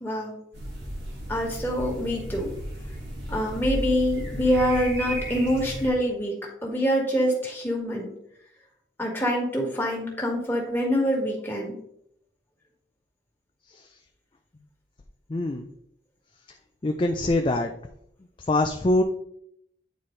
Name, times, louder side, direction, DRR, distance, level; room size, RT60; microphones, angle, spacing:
voice 1, 0.0-0.4 1.3-2.5 3.3-6.3 6.6-8.1 9.0-11.8, equal, 10° left, -2 dB, 1.7 m, -25 dB
sound 1, 0.5-5.9, equal, 85° right, 2.0 m, -34 dB
voice 2, 15.3-15.7 16.8-17.7 18.5-19.0, left 2 dB, 30° left, 4 dB, 0.4 m, -23 dB
9.2 x 4.3 x 3.2 m, 0.72 s
head